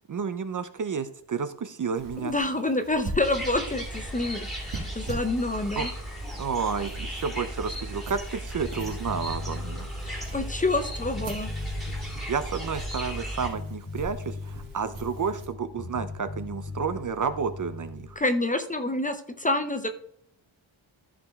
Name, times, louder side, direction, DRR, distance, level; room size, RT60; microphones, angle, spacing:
voice 1, 0.1-2.3 5.8-5.9 6.4-9.9 12.3-18.2, right 6 dB, 40° right, 11 dB, 0.5 m, -31 dB
sound 1, 1.9-15.5, right 1 dB, 80° right, 2.1 m, -43 dB
voice 2, 2.2-5.9 10.0-11.5 18.2-19.9, left 2 dB, 15° left, 8 dB, 0.6 m, -27 dB
sound 2, 3.2-13.5, equal, ahead, 3.0 m, -36 dB
Bass guitar, 8.6-18.2, left 3 dB, 40° left, 2.2 m, -39 dB
14.0 x 5.1 x 3.5 m, 0.67 s
wide cardioid pair, 175°, 47 cm